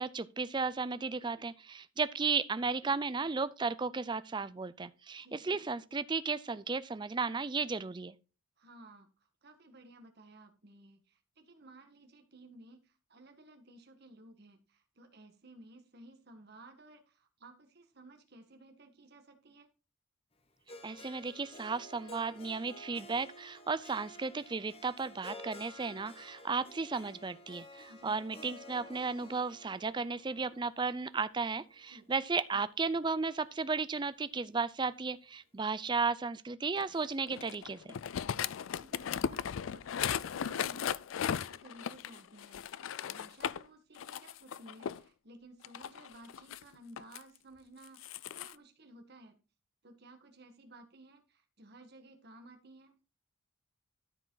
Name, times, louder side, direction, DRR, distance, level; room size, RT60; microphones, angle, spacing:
voice 1, 0.0-8.1 20.8-37.9, right 4 dB, 20° right, 0.4 m, -34 dB
voice 2, 5.2-5.6 8.6-19.7 27.9-28.2 31.9-32.2 38.8-40.9 41.1-49.4 49.8-53.0, right 1 dB, 50° right, 1.6 m, -56 dB
Harp, 20.7-32.8, left 1 dB, 30° left, 1.2 m, -53 dB
sound 1, 36.8-43.6 44.0-45.0 45.6-47.2 47.8-48.5, left 8 dB, 75° left, 0.4 m, -37 dB
13.0 x 5.1 x 3.8 m
head